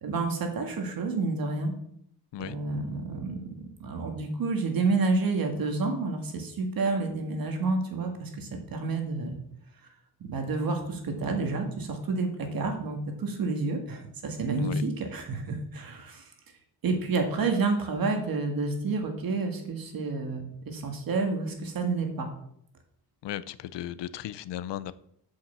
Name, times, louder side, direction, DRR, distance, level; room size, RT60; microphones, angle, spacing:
voice 1, 0.0-1.7 2.4-9.4 10.3-16.3 16.8-22.3, right 3 dB, 55° right, 4 dB, 1.8 m, -29 dB
voice 2, 23.2-24.9, left 12 dB, 90° left, 16 dB, 0.7 m, -36 dB
8.5 x 5.6 x 7.4 m, 0.71 s
wide cardioid pair, 160°, 41 cm